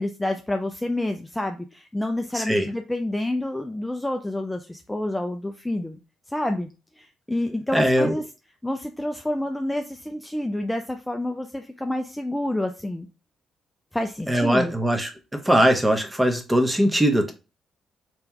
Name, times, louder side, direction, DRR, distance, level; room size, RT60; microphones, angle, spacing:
voice 1, 0.0-6.0 6.3-6.7 7.0-8.2 8.6-13.1 13.9-14.7, left 1 dB, 10° left, 6 dB, 0.5 m, -28 dB
voice 2, 2.3-2.7 7.7-8.2 14.3-15.1 15.4-17.3, equal, 10° right, 5 dB, 1.1 m, -20 dB
3.3 x 3.1 x 3.4 m, 0.30 s
hypercardioid pair, 45°, 0 cm